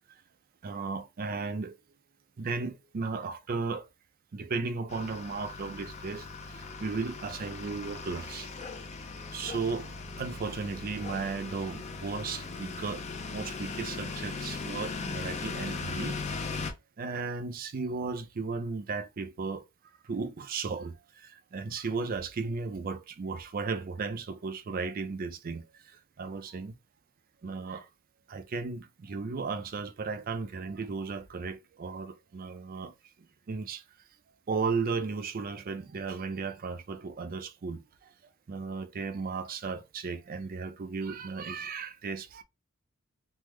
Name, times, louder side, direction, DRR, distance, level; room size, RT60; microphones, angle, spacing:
voice 1, 0.6-1.7 2.4-3.8 4.3-6.2 6.8-8.5 9.3-9.9 10.2-13.1 13.3-16.2 17.0-19.6 20.1-20.9 21.5-25.6 26.2-26.7 27.4-27.9 28.3-32.9 33.5-33.8 34.5-37.8 38.5-42.4, right 4 dB, 45° right, 0.4 m, -35 dB
sound 1, 4.9-16.7, left 4 dB, 35° left, 0.5 m, -39 dB
3.5 x 2.0 x 3.1 m
head